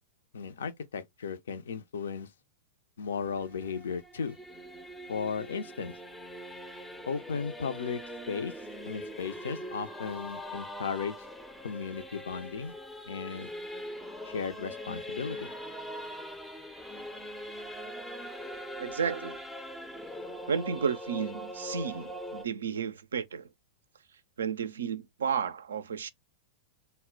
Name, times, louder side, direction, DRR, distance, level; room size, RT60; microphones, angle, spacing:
voice 1, 0.3-2.3 3.0-4.4 5.1-6.0 7.1-8.0 8.3-8.5 8.8-11.2 11.6-12.7 13.1-13.5 14.2-15.5, left 6 dB, 65° left, 0.4 m, -35 dB
Singing / Musical instrument, 3.1-22.5, equal, 5° left, 0.4 m, -42 dB
voice 2, 18.8-19.4 20.5-23.5 24.4-26.1, right 6 dB, 65° right, 0.3 m, -32 dB
2.1 x 2.1 x 3.7 m
figure-of-eight pair, 100°, 0 cm